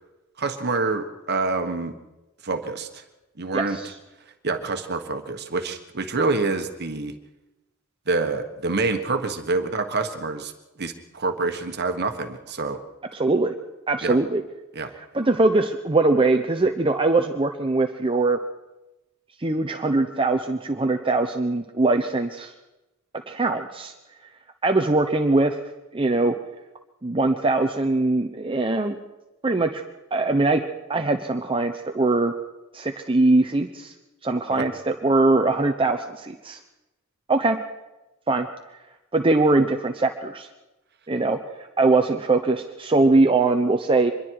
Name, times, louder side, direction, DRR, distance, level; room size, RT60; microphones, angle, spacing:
voice 1, 0.4-1.9 2.4-3.0 3.4-3.8 4.4-7.1 8.1-10.5 10.8-12.8 14.0-14.2 14.7-14.9 34.5-34.6, right 3 dB, 50° right, 6 dB, 1.4 m, -26 dB
voice 2, 3.5-3.9 13.1-13.5 13.9-14.4 15.1-18.4 19.4-22.5 23.3-23.9 24.6-25.6 25.9-26.3 27.0-29.0 29.4-29.8 30.1-30.6 30.9-32.3 32.7-33.9 34.2-36.6 37.3-37.6 38.3-38.5 39.1-40.5 41.1-44.1, right 2 dB, 25° right, 5 dB, 0.9 m, -21 dB
25.0 x 22.0 x 4.8 m, 1.0 s
head